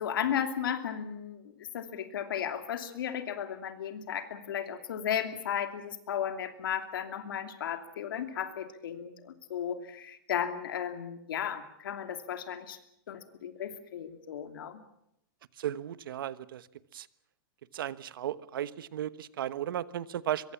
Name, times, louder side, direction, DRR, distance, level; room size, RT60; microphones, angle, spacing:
voice 1, 0.0-12.8 13.1-14.8, left 9 dB, 75° left, 7 dB, 2.9 m, -35 dB
voice 2, 15.6-16.7 16.9-17.1 17.7-20.5, right 11 dB, 75° right, 15 dB, 1.2 m, -35 dB
24.0 x 23.0 x 7.2 m, 0.78 s
supercardioid pair, 165°, 12 cm